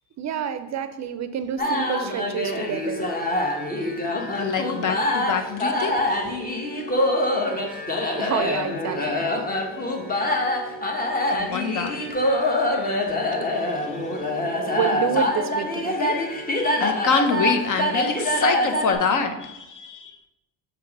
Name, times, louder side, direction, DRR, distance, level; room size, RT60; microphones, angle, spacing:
voice 1, 0.2-3.1 8.2-9.3 14.7-16.2, right 8 dB, 45° right, 11 dB, 0.5 m, -28 dB
sound 1, 1.6-19.0, left 1 dB, 20° left, 1.0 m, -25 dB
voice 2, 4.3-6.4 9.8-9.9 11.3-12.6 13.7-14.3 16.8-20.2, left 5 dB, 50° left, 7 dB, 0.8 m, -26 dB
6.6 x 3.0 x 5.3 m, 0.92 s
cardioid pair, 95°, 41 cm